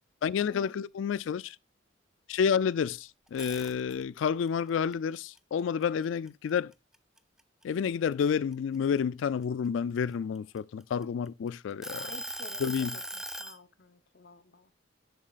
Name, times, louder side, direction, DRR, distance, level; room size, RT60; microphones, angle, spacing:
voice 1, 0.2-1.6 2.3-6.7 7.6-12.1 12.6-13.0, left 7 dB, 80° left, 0.3 m, -30 dB
sound 1, 3.3-4.2 4.7-6.5 6.9-7.2 7.6-9.4 10.1-11.3 11.8-13.6, right 1 dB, 5° right, 0.4 m, -39 dB
voice 2, 11.9-14.7, left 3 dB, 60° left, 0.8 m, -51 dB
10.5 x 7.3 x 2.4 m
head